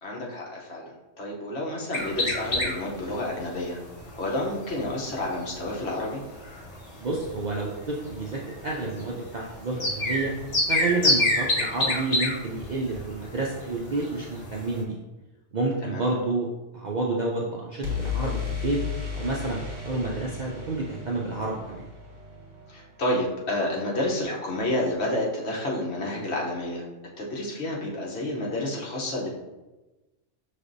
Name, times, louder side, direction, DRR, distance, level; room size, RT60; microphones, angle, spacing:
voice 1, 0.0-3.8 4.2-6.2 15.8-16.0 22.7-26.9 27.2-29.3, left 1 dB, 65° left, -3 dB, 1.2 m, -30 dB
sound 1, 1.9-14.8, left 1 dB, 35° left, 0.9 m, -29 dB
voice 2, 7.0-10.3 10.7-15.0 15.5-16.5 16.7-18.8 19.1-21.8, right 3 dB, 55° right, -3 dB, 0.5 m, -29 dB
sound 2, 9.7-11.7 17.8-23.6, left 6 dB, 70° right, 1.5 m, -36 dB
5.6 x 3.3 x 2.6 m, 1.1 s
omnidirectional pair, 1.2 m